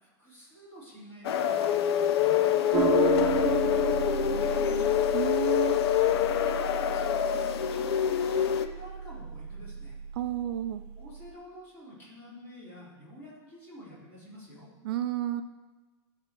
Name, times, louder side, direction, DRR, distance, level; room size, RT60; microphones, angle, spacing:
voice 1, 0.0-5.0 5.9-10.0 11.0-14.7, equal, 15° left, -8 dB, 4.0 m, -48 dB
sound 1, 1.2-8.7, left 10 dB, 65° left, 0.6 m, -26 dB
sound 2, 2.7-11.3, right 6 dB, 15° right, 1.3 m, -33 dB
voice 2, 5.1-5.8 10.1-10.8 14.8-15.4, right 13 dB, 55° right, 9 dB, 0.5 m, -31 dB
13.5 x 4.5 x 6.8 m, 1.2 s
supercardioid pair, 160°, 14 cm